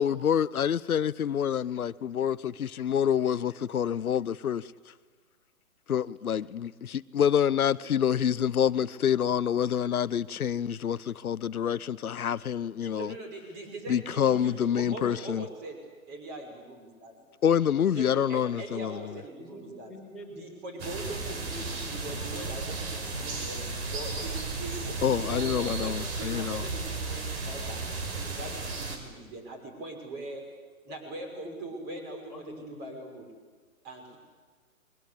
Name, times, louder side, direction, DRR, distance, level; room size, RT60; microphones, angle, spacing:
voice 1, 0.0-4.6 5.9-13.1 13.9-15.4 17.4-19.0 25.0-26.6, left 9 dB, 90° left, 0.8 m, -27 dB
voice 2, 12.9-15.8 16.1-17.3 18.0-19.9 20.4-21.6 21.9-27.8 28.2-30.5 30.8-32.4 32.8-33.3 33.8-34.2, right 2 dB, 25° right, 6.1 m, -41 dB
voice 3, 19.4-22.3 23.3-23.7 25.3-25.5 31.1-32.0 32.3-32.8, equal, ahead, 4.7 m, -46 dB
sound 1, 20.8-29.0, right 3 dB, 45° right, 5.0 m, -34 dB
28.5 x 22.5 x 8.5 m
hypercardioid pair, 145°, 42 cm